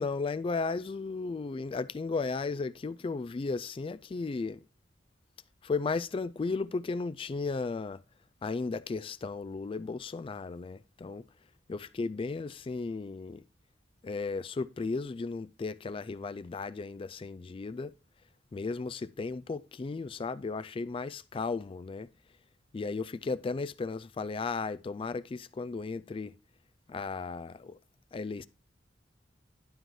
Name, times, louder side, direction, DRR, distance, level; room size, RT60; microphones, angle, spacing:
voice 1, 0.0-4.6 5.6-8.0 8.4-11.3 11.7-13.4 14.0-17.9 18.5-22.1 22.7-26.3 26.9-27.8 28.1-28.5, left 4 dB, 30° left, 0.3 m, -35 dB
11.5 x 4.3 x 4.7 m
head